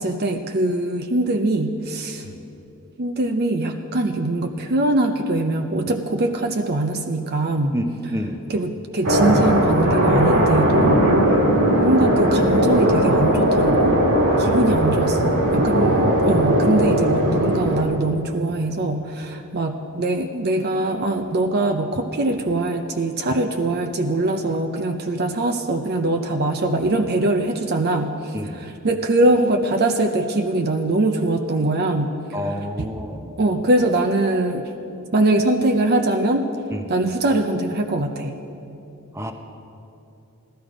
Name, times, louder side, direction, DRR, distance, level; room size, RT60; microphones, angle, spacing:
voice 1, 0.0-2.3 3.0-7.8 8.5-11.1 11.8-13.9 14.4-32.2 33.4-34.7 35.1-36.5 36.9-38.4, right 2 dB, 45° right, 5 dB, 0.6 m, -22 dB
voice 2, 7.7-8.4 11.3-11.5 14.3-14.6 28.3-28.6 32.3-33.3 36.7-36.8 39.1-39.3, equal, 10° right, 4 dB, 0.9 m, -29 dB
sound 1, 9.0-17.8, equal, 70° right, 2.4 m, -18 dB
16.0 x 12.5 x 5.1 m, 2.8 s
head